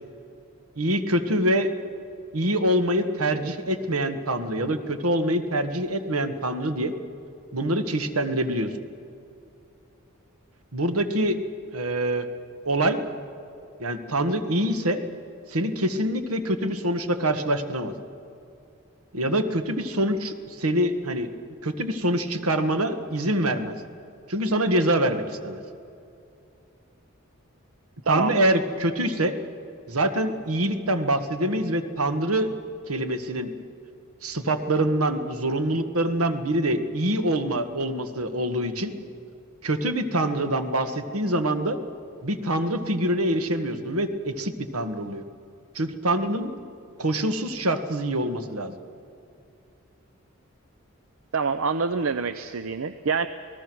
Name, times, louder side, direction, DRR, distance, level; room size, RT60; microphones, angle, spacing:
voice 1, 0.8-1.7 2.3-6.9 7.5-8.7 10.7-11.4 11.7-12.3 12.7-13.0 13.8-15.0 15.5-17.9 19.1-21.3 21.6-23.7 24.3-25.6 28.1-29.4 29.9-32.5 32.9-33.5 34.2-38.9 39.6-41.8 42.2-45.2 45.8-46.5 47.0-48.7, right 1 dB, 85° right, 8 dB, 1.6 m, -25 dB
voice 2, 51.3-53.3, right 5 dB, 70° right, 11 dB, 0.6 m, -26 dB
28.0 x 19.0 x 6.2 m, 2.6 s
head